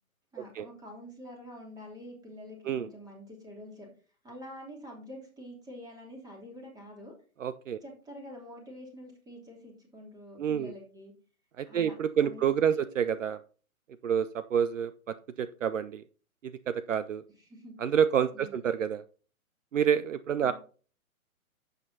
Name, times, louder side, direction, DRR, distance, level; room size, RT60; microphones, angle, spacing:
voice 1, 0.3-3.9 4.2-7.1 7.8-11.1 11.7-11.9 12.2-12.9 17.4-17.8 18.3-18.7 20.4-20.5, left 1 dB, 10° right, -1 dB, 3.0 m, -47 dB
voice 2, 7.4-7.8 10.4-10.7 11.6-13.4 14.0-16.0 16.7-17.2 17.8-19.0 19.7-20.5, right 8 dB, 60° right, 13 dB, 0.6 m, -28 dB
11.5 x 8.0 x 2.7 m, 0.39 s
figure-of-eight pair, 125°, 43 cm